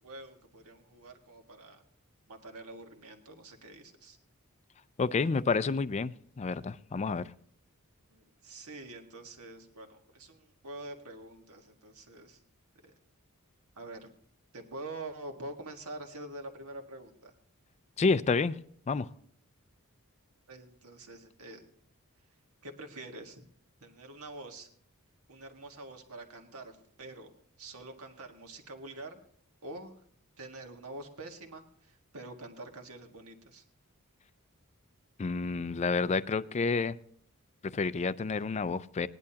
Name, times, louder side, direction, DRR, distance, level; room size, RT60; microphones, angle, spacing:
voice 1, 0.0-1.8 2.3-4.2 8.1-12.4 12.8-12.9 13.8-14.2 14.5-17.3 20.5-21.6 22.6-23.5 23.8-24.7 25.3-27.3 27.6-29.2 29.6-30.0 30.4-33.6, right 2 dB, 75° right, 4 dB, 1.6 m, -46 dB
voice 2, 5.0-7.3 18.0-18.6 18.9-19.1 35.2-37.0 37.6-39.1, left 4 dB, 30° left, 15 dB, 0.4 m, -29 dB
19.0 x 10.5 x 2.8 m, 0.62 s
head